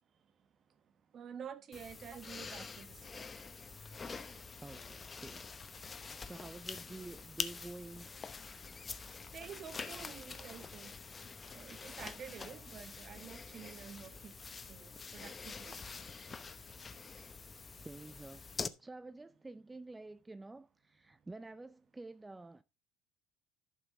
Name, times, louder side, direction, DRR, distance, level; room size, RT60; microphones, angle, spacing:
voice 1, 0.1-3.3 9.3-11.3 11.5-16.0 16.2-16.6 17.1-17.7, right 7 dB, 45° right, 1.1 m, -51 dB
sound 1, 1.7-18.7, left 4 dB, 30° left, 0.8 m, -46 dB
voice 2, 4.6-5.7 6.2-8.1 8.6-9.3 17.7-18.5 18.8-22.6, right 2 dB, 15° right, 0.4 m, -50 dB
11.0 x 6.0 x 3.7 m
supercardioid pair, 80°, 0 cm